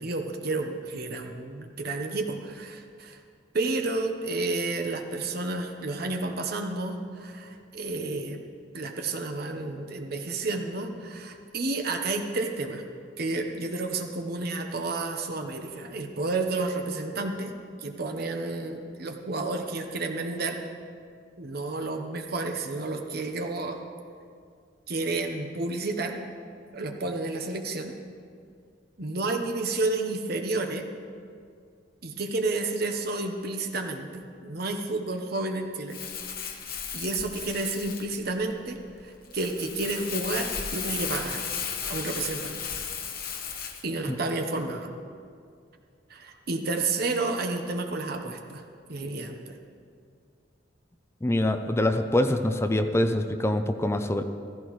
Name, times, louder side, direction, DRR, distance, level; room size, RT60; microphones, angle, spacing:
voice 1, 0.0-3.2 3.5-8.4 8.7-12.8 13.2-17.5 17.8-20.6 21.4-23.8 24.9-26.2 26.7-27.9 29.0-30.9 32.0-36.0 36.5-36.7 36.9-41.4 41.9-42.6 43.8-45.0 46.1-48.6 48.9-49.6, right 3 dB, 60° right, 4 dB, 0.9 m, -31 dB
Crumpling crinkling, 35.9-43.8, left 7 dB, 55° left, 1.1 m, -35 dB
voice 2, 51.2-54.2, left 1 dB, 15° left, 8 dB, 0.5 m, -24 dB
15.0 x 15.0 x 3.2 m, 2.2 s
head